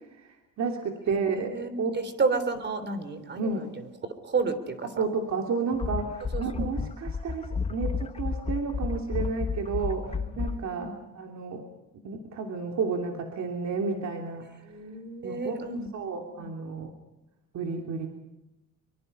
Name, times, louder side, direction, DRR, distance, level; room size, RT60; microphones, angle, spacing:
voice 1, 0.2-1.9 3.4-3.7 4.8-10.9 11.1-11.6 12.0-14.5 15.2-15.6 15.9-16.9 17.5-18.1, right 5 dB, 60° right, 2 dB, 3.0 m, -31 dB
voice 2, 1.1-3.7 4.2-4.9 6.3-6.7 9.8-11.0 14.7-15.9 16.4-16.5, right 4 dB, 35° right, 11 dB, 3.5 m, -32 dB
sound 1, 5.7-10.6, left 5 dB, 20° left, 0.7 m, -32 dB
25.5 x 24.5 x 5.6 m, 0.97 s
cardioid pair, 130°, 32 cm